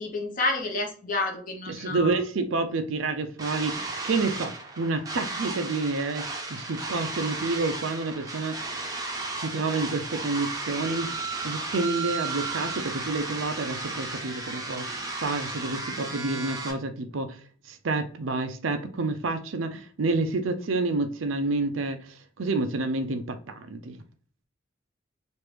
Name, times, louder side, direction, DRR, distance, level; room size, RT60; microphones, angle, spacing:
voice 1, 0.0-2.2 9.4-9.5 15.7-15.8, left 2 dB, 40° left, 0.8 m, -30 dB
voice 2, 1.7-8.6 9.4-11.1 11.4-17.4 17.7-22.0 22.4-24.0, right 3 dB, 90° right, 0.6 m, -29 dB
sound 1, 3.4-16.7, right 3 dB, 20° right, 0.6 m, -34 dB
3.2 x 2.5 x 3.2 m
head